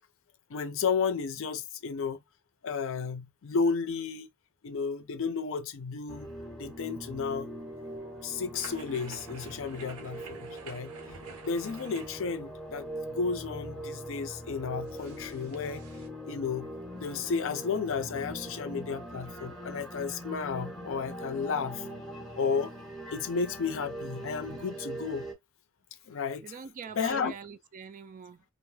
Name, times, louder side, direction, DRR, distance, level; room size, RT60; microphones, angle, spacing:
voice 1, 0.5-2.2 2.6-4.3 4.6-6.3 6.6-7.5 8.2-10.9 11.4-15.8 16.3-16.7 16.9-21.8 22.4-22.7 23.1-25.2 26.1-26.5 27.0-27.3, left 5 dB, 65° left, 0.5 m, -32 dB
sound 1, 6.1-25.3, equal, ahead, 0.6 m, -42 dB
sound 2, 8.5-16.1, right 4 dB, 75° right, 0.7 m, -50 dB
voice 2, 26.4-28.4, right 7 dB, 35° right, 0.3 m, -44 dB
2.3 x 2.0 x 3.2 m
head